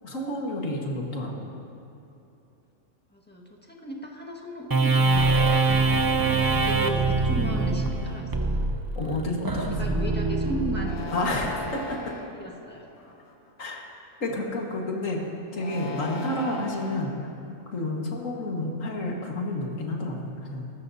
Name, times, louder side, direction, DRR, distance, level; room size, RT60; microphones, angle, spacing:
voice 1, 0.0-1.6 6.5-6.8 9.0-10.0 11.1-12.0 13.6-13.8 14.2-15.2 15.5-17.2 17.7-20.6, left 1 dB, 65° left, -1 dB, 2.0 m, -30 dB
voice 2, 3.1-8.3 9.8-11.0 12.3-12.8, equal, 5° left, -2 dB, 1.5 m, -35 dB
sound 1, 4.7-11.5, right 3 dB, 25° right, 0.5 m, -24 dB
sound 2, 10.8-12.3 13.0-13.5 15.5-17.0, left 2 dB, 85° left, 1.8 m, -37 dB
22.5 x 13.0 x 2.8 m, 2.9 s
omnidirectional pair, 1.5 m